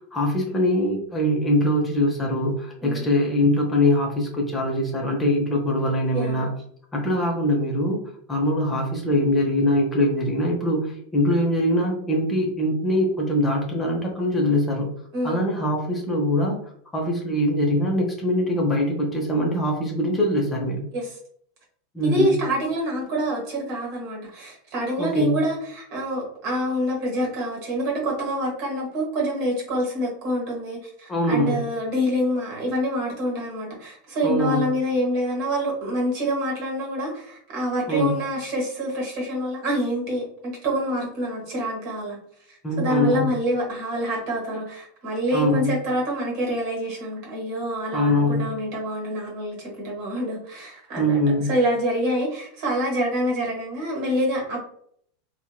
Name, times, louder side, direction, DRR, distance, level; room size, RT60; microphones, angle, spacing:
voice 1, 0.1-6.5 6.9-8.0 8.3-14.9 15.2-16.6 16.9-20.9 21.9-22.4 25.0-25.4 31.1-31.6 34.2-34.7 37.9-38.1 42.6-43.4 45.3-45.7 47.9-48.5 51.0-51.5, left 1 dB, 20° left, -1 dB, 0.7 m, -22 dB
voice 2, 6.1-6.5 15.1-15.4 20.9-21.1 22.0-42.2 42.5-51.2 51.5-54.6, equal, 50° right, -1 dB, 1.1 m, -26 dB
2.8 x 2.2 x 2.3 m, 0.65 s
figure-of-eight pair, 90°, 0 cm